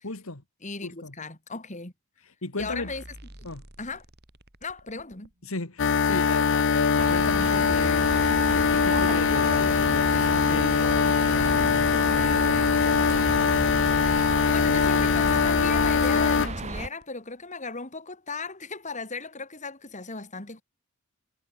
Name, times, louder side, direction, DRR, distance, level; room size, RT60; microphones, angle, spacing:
voice 1, 0.0-0.4 0.8-1.1 2.4-2.9 3.4-3.6 5.4-10.8 11.2-13.4, left 2 dB, 80° left, 2.3 m, -36 dB
voice 2, 0.6-1.9 2.6-3.0 3.4-3.5 3.8-4.0 4.6-5.3 14.2-20.6, left 4 dB, 35° left, 4.3 m, -37 dB
sound 1, 2.6-5.3 6.3-6.4 7.2-7.3 7.7-10.7 11.5-11.6 12.5-12.6 13.0-13.1 13.3-16.0 17.0-17.1, right 1 dB, 50° right, 3.9 m, -48 dB
sound 2, 5.8-16.5, left 6 dB, 60° left, 0.6 m, -22 dB
sound 3, 7.0-16.9, right 3 dB, 30° right, 0.8 m, -34 dB
head